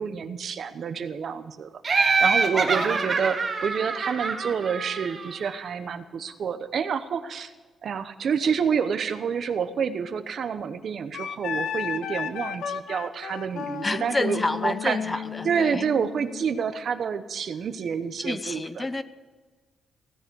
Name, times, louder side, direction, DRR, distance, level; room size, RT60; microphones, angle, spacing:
voice 1, 0.0-7.5 7.8-15.0 15.4-18.9, right 6 dB, 50° right, 11 dB, 0.9 m, -28 dB
Laughter, 1.8-5.5, right 4 dB, 30° right, 1.3 m, -25 dB
voice 2, 2.5-3.1 13.8-15.9 18.2-19.0, left 2 dB, 15° left, 13 dB, 0.5 m, -29 dB
Wind instrument woodwind instrument, 11.1-16.5, left 7 dB, 90° left, 0.9 m, -34 dB
16.5 x 9.6 x 6.2 m, 1.4 s
wide cardioid pair, 175°, 0 cm